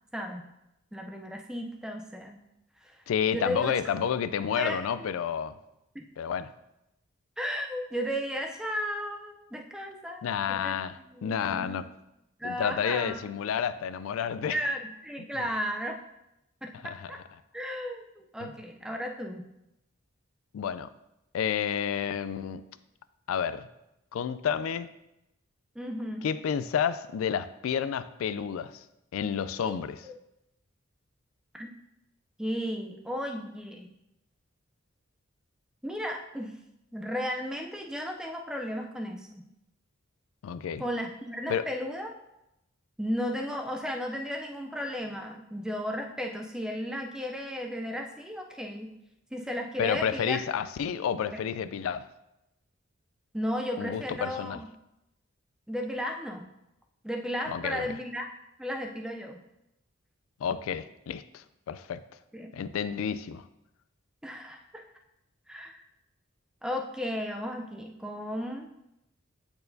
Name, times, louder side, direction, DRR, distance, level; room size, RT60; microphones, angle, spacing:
voice 1, 0.1-0.5 0.9-2.4 2.8-3.0 3.3-3.7 4.6-5.1 5.9-6.0 7.4-11.8 12.4-13.2 14.5-16.0 16.6-17.2 17.5-19.4 25.8-26.3 29.7-29.8 30.0-30.1 31.5-31.7 32.4-33.9 35.8-36.5 36.9-39.4 40.8-42.1 43.0-48.9 49.3-50.4 51.3-51.4 53.3-54.7 55.7-56.4 57.0-58.3 58.6-59.4 62.3-62.5 64.2-64.9 65.5-65.7 66.6-68.7, equal, 5° right, 3 dB, 0.4 m, -34 dB
voice 2, 3.1-5.5 6.2-6.5 10.2-11.9 12.4-14.6 16.8-17.1 18.4-18.5 20.5-20.9 21.3-22.6 23.3-23.7 24.1-24.9 26.2-28.8 29.1-30.0 40.4-40.8 41.5-41.7 49.8-52.0 53.8-54.6 57.5-57.9 60.4-62.0 62.5-63.4, left 8 dB, 85° left, 13 dB, 0.3 m, -30 dB
8.6 x 4.5 x 2.6 m, 0.87 s
head